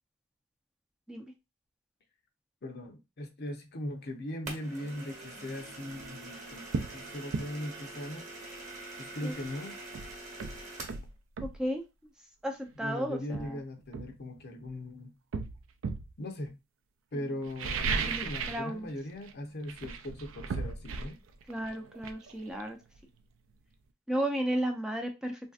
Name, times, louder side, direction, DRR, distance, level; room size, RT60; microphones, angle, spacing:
voice 1, 2.6-6.7 6.9-8.2 9.0-9.8 12.8-15.1 16.2-16.6 17.1-21.2, left 1 dB, 55° left, 0.6 m, -39 dB
sound 1, 4.5-11.1, right 2 dB, 40° right, 1.0 m, -45 dB
sound 2, 6.0-6.1 6.7-7.0 7.3-7.5 9.4-9.5 9.9-11.6 12.7-12.8 13.3-14.7 15.3-16.1 17.4-18.7 19.0-19.3 19.6-23.2 23.5-23.6, right 4 dB, 75° right, 0.4 m, -36 dB
voice 2, 11.4-11.8 12.4-13.6 17.1-17.2 18.1-18.9 21.5-22.8 24.1-25.5, right 1 dB, 5° right, 0.4 m, -34 dB
3.2 x 2.6 x 2.3 m
head